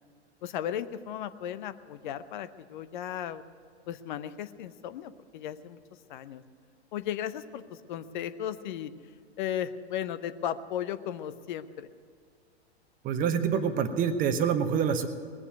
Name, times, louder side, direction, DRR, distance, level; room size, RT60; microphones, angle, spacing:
voice 1, 0.4-3.4 3.9-5.8 6.1-6.4 6.9-8.9 9.4-11.9, left 10 dB, 45° left, 12 dB, 0.7 m, -35 dB
voice 2, 13.0-15.1, right 7 dB, 25° right, 10 dB, 1.0 m, -26 dB
19.5 x 7.0 x 9.3 m, 2.2 s
figure-of-eight pair, 100°, 34 cm